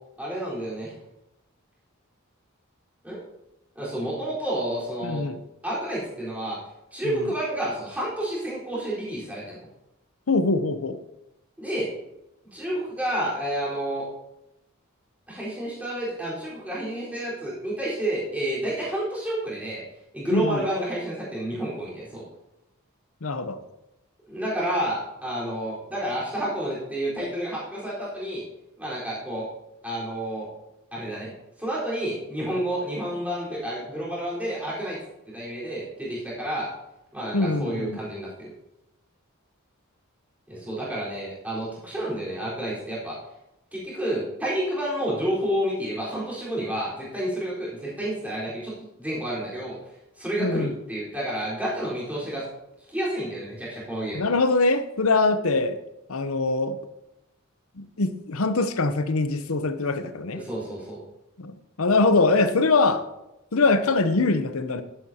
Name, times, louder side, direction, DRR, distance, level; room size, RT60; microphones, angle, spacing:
voice 1, 0.2-0.9 3.0-3.2 3.8-5.2 5.6-6.6 6.9-9.7 11.6-11.9 12.5-14.1 15.3-19.8 20.1-22.2 24.3-28.4 28.8-29.5 29.8-30.5 30.9-31.3 31.6-35.0 35.3-36.7 37.1-38.5 40.5-43.2 43.7-49.8 50.1-52.4 52.9-54.3 60.3-61.0, right 1 dB, 5° right, -7 dB, 4.2 m, -30 dB
voice 2, 5.0-5.4 7.0-7.3 10.3-11.0 20.3-20.6 23.2-23.6 37.3-38.0 50.4-50.7 54.1-55.8 56.1-56.8 57.8-60.4 61.4-63.1 63.5-64.8, left 3 dB, 75° left, 11 dB, 0.8 m, -23 dB
11.5 x 11.0 x 2.9 m, 0.92 s
head